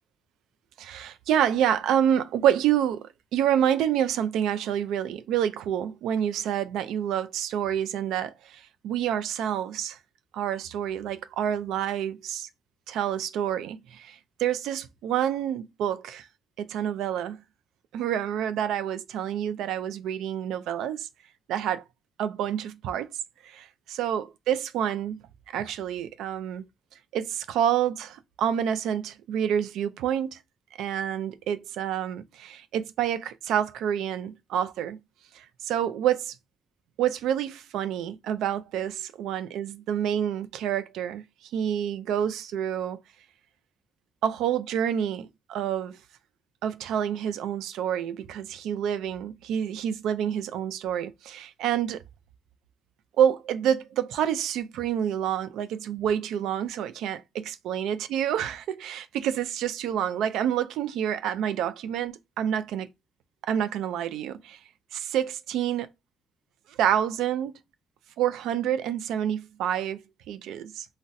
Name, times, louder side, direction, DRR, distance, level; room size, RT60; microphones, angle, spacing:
voice 1, 0.8-10.0 10.3-12.5 12.9-16.3 16.6-17.4 17.9-21.1 21.5-21.8 22.2-23.1 23.4-25.2 25.5-26.6 27.1-30.4 30.8-35.0 35.3-36.3 37.0-41.2 41.5-43.0 44.2-46.0 46.6-52.0 53.2-62.9 63.5-64.6 64.9-65.9 66.7-67.6 68.2-70.9, right 9 dB, 90° right, 0.3 m, -28 dB
3.9 x 2.0 x 2.5 m
cardioid pair, 105°, 0 cm